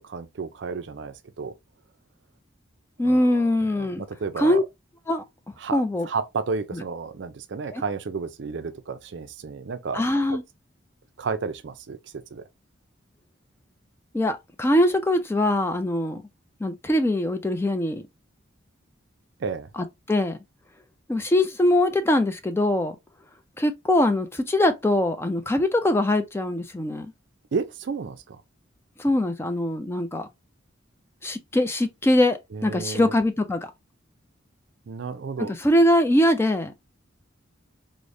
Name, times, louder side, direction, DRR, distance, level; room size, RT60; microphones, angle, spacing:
voice 1, 0.0-1.5 3.0-3.5 3.8-4.6 5.6-10.0 11.2-12.4 19.4-19.7 27.5-28.4 32.5-33.1 34.9-35.5, right 5 dB, 60° right, 0.4 m, -32 dB
voice 2, 3.0-4.0 4.4-4.6 5.1-5.2 5.7-6.1 6.7-6.8 7.7-7.8 9.9-10.4 14.1-16.2 16.6-18.0 19.8-20.4 21.1-23.0 23.6-27.1 29.0-30.3 31.2-33.7 35.5-36.7, left 1 dB, 10° left, 0.3 m, -22 dB
4.8 x 2.0 x 2.6 m
head